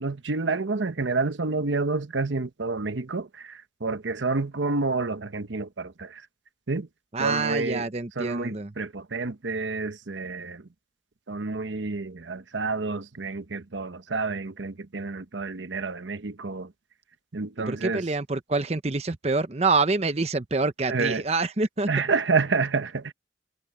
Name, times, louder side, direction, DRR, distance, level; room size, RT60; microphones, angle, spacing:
voice 1, 0.0-6.2 6.7-6.9 7.2-7.9 8.2-10.6 11.3-16.7 17.3-18.0 20.9-21.2 21.9-23.1, right 3 dB, 85° right, 1.0 m, -29 dB
voice 2, 7.1-8.7 17.6-21.9, right 3 dB, 35° right, 0.8 m, -26 dB
head